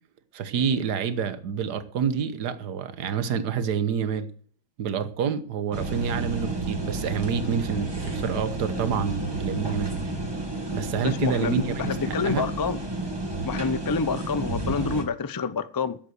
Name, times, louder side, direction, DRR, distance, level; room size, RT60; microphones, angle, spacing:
voice 1, 0.3-4.3 4.8-9.9 10.7-12.5, right 7 dB, 90° right, 1.6 m, -28 dB
sound 1, 5.7-15.0, right 2 dB, 15° right, 2.0 m, -31 dB
voice 2, 11.0-12.8 13.4-16.0, left 5 dB, 25° left, 0.4 m, -28 dB
12.5 x 8.3 x 7.9 m
omnidirectional pair, 1.7 m